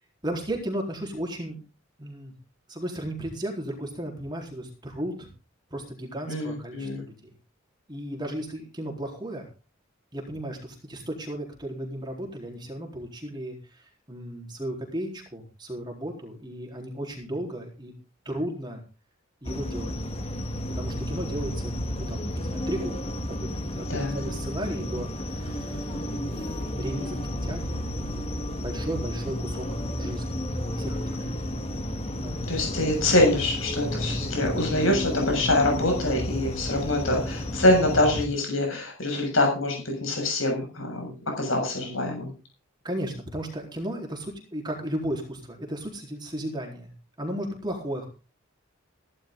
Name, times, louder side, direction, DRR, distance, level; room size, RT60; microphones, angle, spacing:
voice 1, 0.2-1.6 2.0-2.3 2.7-5.3 5.7-7.3 7.9-9.5 10.1-17.9 18.2-18.8 19.4-20.0 20.8-23.1 23.4-27.8 28.2-30.4 30.8-31.6 32.2-32.6 42.8-46.9 47.2-48.1, right 1 dB, 20° right, 1 dB, 4.1 m, -35 dB
voice 2, 6.3-7.0 23.9-24.3 32.5-42.3, left 1 dB, 80° left, 1 dB, 6.9 m, -25 dB
sound 1, 19.4-38.3, left 1 dB, 30° left, 1.8 m, -32 dB
16.5 x 12.0 x 3.9 m, 0.33 s
head